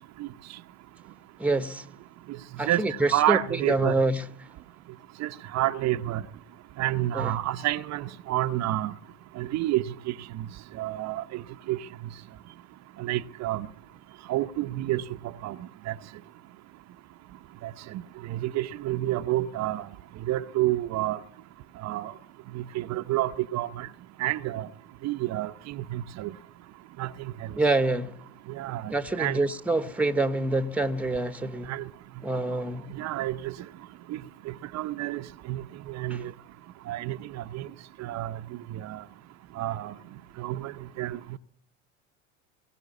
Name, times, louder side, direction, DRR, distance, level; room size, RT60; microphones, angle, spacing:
voice 1, 1.4-1.8 2.6-3.4 3.7-4.2 7.1-7.3 27.6-28.1 28.9-31.7 32.2-32.8 36.1-36.2, right 2 dB, 5° right, 1.2 m, -26 dB
voice 2, 2.7-3.9 5.2-6.2 6.8-8.9 9.4-10.5 10.7-11.4 11.7-11.8 13.0-13.7 14.3-15.0 15.4-15.6 15.9-16.0 17.6-17.7 18.3-19.8 20.3-21.2 21.8-22.1 22.5-23.9 24.2-24.7 25.0-26.3 27.0-27.5 28.5-29.5 31.7-31.8 32.9-33.5 34.1-34.2 34.5-35.2 35.5-36.3 36.9-37.7 38.0-38.4 38.7-39.0 39.6-39.9 40.4-41.4, right 15 dB, 45° right, 0.8 m, -29 dB
21.0 x 17.0 x 9.6 m
hypercardioid pair, 85°, 38 cm